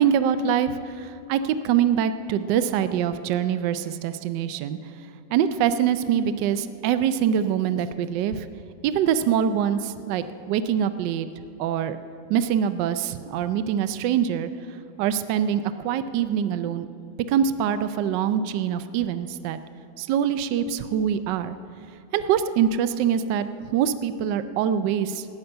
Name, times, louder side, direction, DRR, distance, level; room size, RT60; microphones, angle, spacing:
voice 1, 0.0-4.8 5.3-8.5 8.8-11.3 11.6-12.0 12.3-14.5 15.0-16.9 17.3-19.6 20.0-21.5 22.1-23.5 23.7-25.3, right 9 dB, 75° right, 11 dB, 1.2 m, -24 dB
13.0 x 9.4 x 7.8 m, 2.8 s
omnidirectional pair, 2.0 m